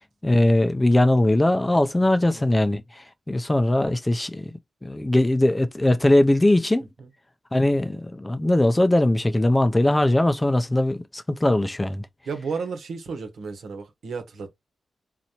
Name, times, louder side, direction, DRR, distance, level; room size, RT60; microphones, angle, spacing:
voice 1, 0.2-4.5 4.8-6.9 7.5-12.1, left 1 dB, 15° left, 0.5 m, -20 dB
voice 2, 2.2-2.5 7.0-7.1 12.2-14.5, right 5 dB, 85° right, 1.2 m, -33 dB
4.2 x 4.0 x 3.0 m
cardioid pair, 85°, 0 cm